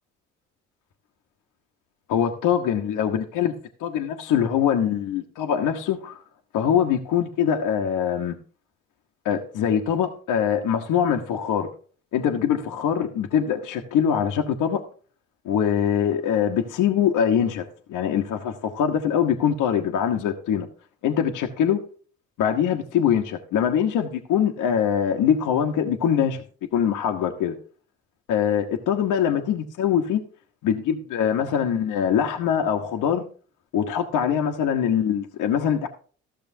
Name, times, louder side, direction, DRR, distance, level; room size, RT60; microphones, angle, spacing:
voice 1, 2.1-6.2 6.5-8.4 9.2-11.7 12.1-14.8 15.4-20.7 21.0-21.8 22.4-26.4 26.7-27.6 28.3-30.2 30.6-33.2 33.7-35.9, left 8 dB, 65° left, 3 dB, 1.1 m, -23 dB
14.0 x 6.6 x 2.7 m, 0.41 s
hypercardioid pair, 50°, 33 cm